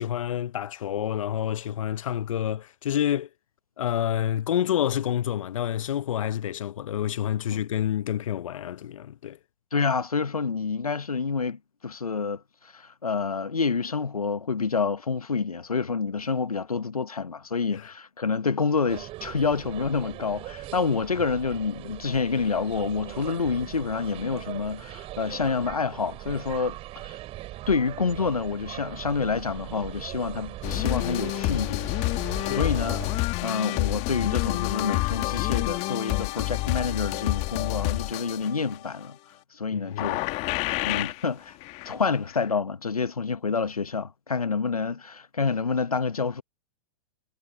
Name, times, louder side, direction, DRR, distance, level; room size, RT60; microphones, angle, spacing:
voice 1, 0.0-3.3 3.8-9.4 17.7-17.9 32.4-32.7 39.7-40.2, left 10 dB, 65° left, 1.1 m, -28 dB
voice 2, 9.7-27.2 27.7-31.9 32.4-33.0 33.4-39.2 39.5-40.3 40.8-41.6 41.8-46.4, left 5 dB, 85° left, 1.2 m, -28 dB
sound 1, 18.9-33.2, right 16 dB, 30° right, 5.5 m, -40 dB
sound 2, 30.6-38.8 40.0-41.3 41.6-42.0 42.3-42.4, left 23 dB, 35° left, 2.1 m, -28 dB
figure-of-eight pair, 110°, 18 cm